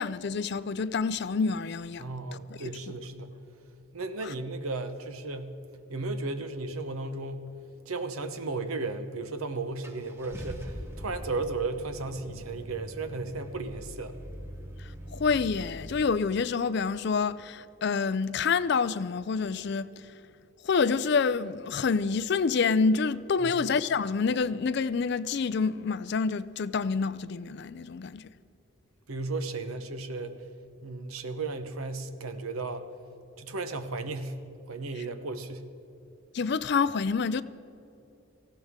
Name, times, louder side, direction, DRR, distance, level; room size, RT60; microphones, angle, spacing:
voice 1, 0.0-2.1 4.2-4.3 15.1-19.9 20.6-28.3 36.3-37.4, left 5 dB, 55° left, 0.4 m, -27 dB
voice 2, 2.0-3.3 3.9-5.5 5.9-7.5 7.9-14.1 23.4-23.5 29.1-30.4 30.8-32.9 33.4-34.4 34.7-35.6, right 3 dB, 85° right, 1.0 m, -35 dB
Car / Engine starting, 9.1-9.2 9.8-16.0, equal, 10° right, 0.9 m, -42 dB
18.5 x 15.5 x 3.7 m
head